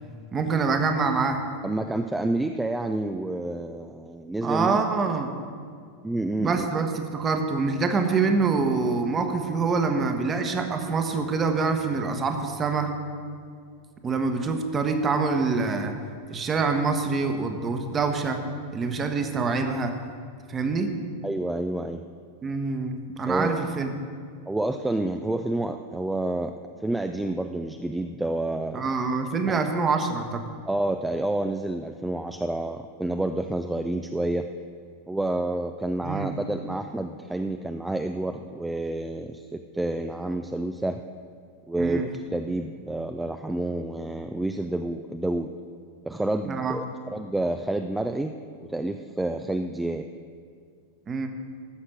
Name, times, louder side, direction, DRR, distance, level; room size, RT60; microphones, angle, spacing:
voice 1, 0.3-1.4 4.4-5.3 6.4-12.9 14.0-16.0 16.3-18.4 18.7-19.9 20.5-20.9 22.4-23.9 28.7-30.4 36.0-36.3 41.8-42.1 46.4-46.8 51.1-51.3, right 4 dB, 20° right, 6 dB, 1.1 m, -25 dB
voice 2, 1.6-4.8 6.0-6.7 21.2-22.0 23.3-23.6 24.5-26.6 26.8-28.9 29.5-29.6 30.7-34.5 35.1-41.0 41.7-45.5 46.1-48.3 48.7-50.1, right 2 dB, 5° right, 7 dB, 0.4 m, -29 dB
14.0 x 6.5 x 6.1 m, 2.1 s
figure-of-eight pair, 90°, 0 cm